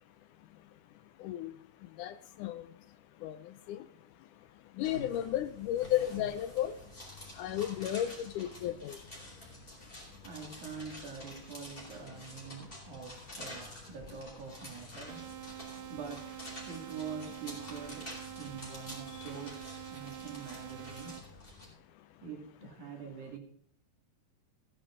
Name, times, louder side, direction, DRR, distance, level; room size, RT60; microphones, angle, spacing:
voice 1, 4.8-6.7 7.4-9.0, left 12 dB, 80° left, 13 dB, 2.0 m, -33 dB
sound 1, 4.8-21.7, left 1 dB, 15° left, 4.0 m, -49 dB
voice 2, 10.2-15.3 15.9-16.3 16.7-21.3 22.2-23.4, right 6 dB, 60° right, 3 dB, 3.6 m, -45 dB
sound 2, 15.1-21.2, right 13 dB, 80° right, 2.4 m, -46 dB
16.0 x 9.9 x 3.7 m, 0.68 s
omnidirectional pair, 3.9 m